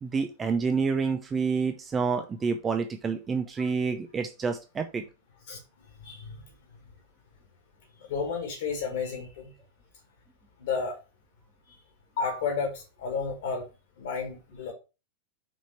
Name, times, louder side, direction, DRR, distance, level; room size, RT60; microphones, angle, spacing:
voice 1, 0.0-5.0, right 5 dB, 20° right, 7 dB, 0.6 m, -28 dB
voice 2, 6.0-6.4 8.0-9.5 10.6-11.0 12.2-13.7 14.0-14.7, left 5 dB, 55° left, 2 dB, 1.8 m, -32 dB
6.2 x 4.2 x 4.2 m, 0.30 s
figure-of-eight pair, 90°, 0 cm